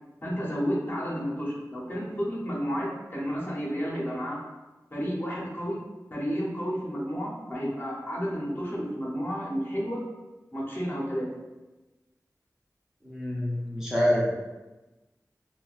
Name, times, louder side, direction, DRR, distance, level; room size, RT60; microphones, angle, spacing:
voice 1, 0.2-4.4 4.9-5.8 6.1-10.0 10.5-11.3, equal, 35° left, -5 dB, 0.7 m, -31 dB
voice 2, 13.0-14.4, equal, 5° right, -6 dB, 0.5 m, -26 dB
2.7 x 2.1 x 2.3 m, 1.1 s
wide cardioid pair, 65°, 6 cm